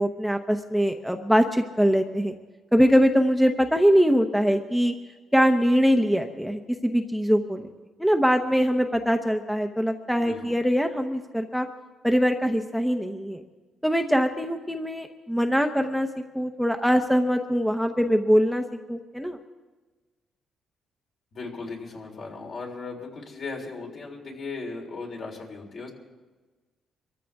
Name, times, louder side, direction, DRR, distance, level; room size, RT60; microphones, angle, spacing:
voice 1, 0.0-2.3 2.7-4.9 5.3-7.7 8.0-11.7 12.0-13.4 13.8-16.1 16.3-18.6 18.9-19.4, equal, ahead, 5 dB, 0.8 m, -22 dB
voice 2, 21.3-25.9, left 3 dB, 55° left, 0 dB, 3.7 m, -37 dB
24.5 x 14.0 x 3.5 m, 1.3 s
cardioid pair, 90°, 0 cm